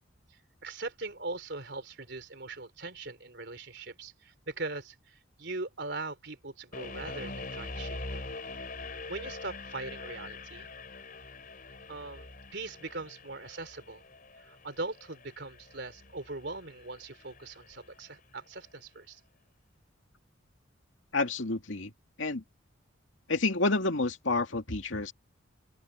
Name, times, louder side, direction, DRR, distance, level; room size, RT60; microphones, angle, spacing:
voice 1, 0.6-8.2 9.1-10.7 11.9-14.0 14.4-19.2, right 3 dB, 60° right, 3.8 m, -40 dB
sound 1, 6.7-17.8, left 3 dB, 45° left, 4.3 m, -44 dB
voice 2, 21.1-21.9 22.2-22.4 23.3-25.1, left 3 dB, 80° left, 2.4 m, -29 dB
open air
head